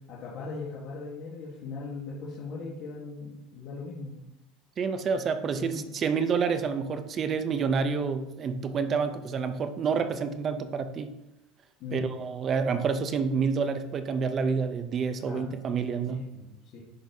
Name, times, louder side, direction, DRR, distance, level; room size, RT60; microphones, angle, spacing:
voice 1, 0.1-4.1 5.5-5.8 11.8-12.1 15.2-15.4 16.1-16.8, left 4 dB, 50° left, -5 dB, 1.3 m, -39 dB
voice 2, 4.8-11.1 11.9-16.3, right 5 dB, 30° right, 10 dB, 0.5 m, -28 dB
10.5 x 4.0 x 2.7 m, 0.89 s
supercardioid pair, 135°, 0 cm